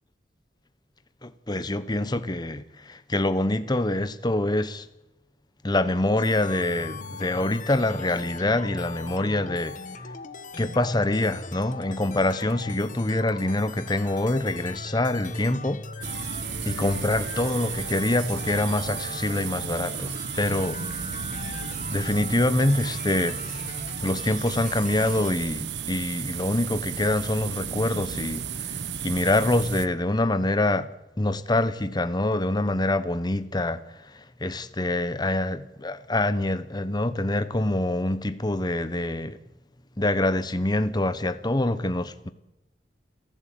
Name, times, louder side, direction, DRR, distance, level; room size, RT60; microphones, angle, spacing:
voice 1, 1.2-4.9 5.6-9.8 10.6-16.1 16.7-20.8 21.9-23.7 24.0-28.7 29.0-30.9 31.2-33.8 34.1-39.4 40.0-42.3, left 1 dB, 25° left, 1.1 m, -25 dB
sound 1, 6.2-25.3, left 3 dB, 45° left, 1.4 m, -39 dB
sound 2, 16.0-29.9, right 7 dB, 70° right, 1.1 m, -34 dB
29.5 x 11.5 x 8.7 m
head